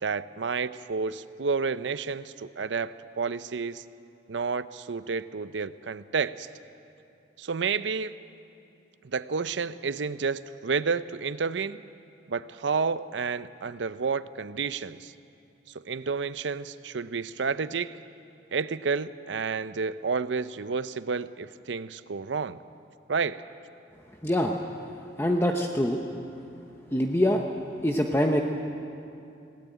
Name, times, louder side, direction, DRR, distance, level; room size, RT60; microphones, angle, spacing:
voice 1, 0.0-3.8 4.3-6.5 7.4-8.1 9.0-11.8 12.3-15.1 15.7-18.0 18.5-22.6 23.1-23.4, right 5 dB, 75° right, 14 dB, 0.6 m, -30 dB
voice 2, 24.2-24.5 25.2-26.0 26.9-27.4 27.8-28.4, left 1 dB, 15° left, 2 dB, 0.9 m, -24 dB
20.5 x 17.5 x 9.1 m, 2.6 s
head